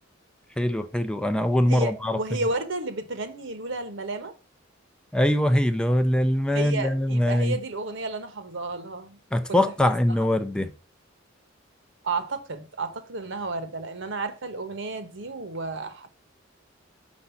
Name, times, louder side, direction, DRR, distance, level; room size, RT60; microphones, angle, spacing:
voice 1, 0.6-2.2 5.1-7.6 9.3-10.7, left 1 dB, 5° left, 0.5 m, -23 dB
voice 2, 1.7-4.3 6.5-9.2 9.5-9.6 12.0-16.1, right 3 dB, 70° right, 1.1 m, -32 dB
5.4 x 4.9 x 5.7 m
head